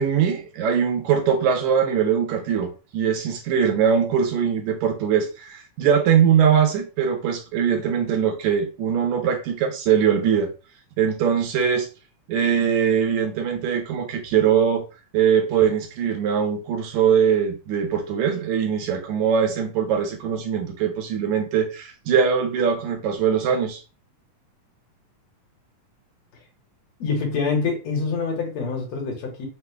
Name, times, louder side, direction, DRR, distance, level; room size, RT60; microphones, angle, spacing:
voice 1, 0.0-10.5 11.0-11.9 12.3-14.8 15.1-23.8, right 7 dB, 75° right, 1.9 m, -21 dB
voice 2, 27.0-29.5, left 4 dB, 60° left, 2.2 m, -25 dB
5.8 x 2.0 x 3.3 m
omnidirectional pair, 3.7 m